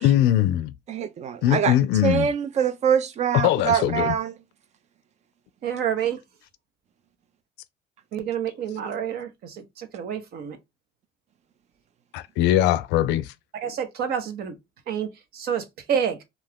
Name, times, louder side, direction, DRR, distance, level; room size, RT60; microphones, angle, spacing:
voice 1, 0.0-0.7 1.4-2.3 3.3-4.2 12.1-13.3, left 12 dB, 75° left, 0.4 m, -21 dB
voice 2, 0.9-1.8 2.0-4.3, right 8 dB, 40° right, 0.4 m, -24 dB
voice 3, 5.6-6.2 8.1-10.6 13.6-14.6 14.9-16.2, right 8 dB, 60° right, 0.8 m, -28 dB
2.4 x 2.3 x 3.4 m
supercardioid pair, 80°, 18 cm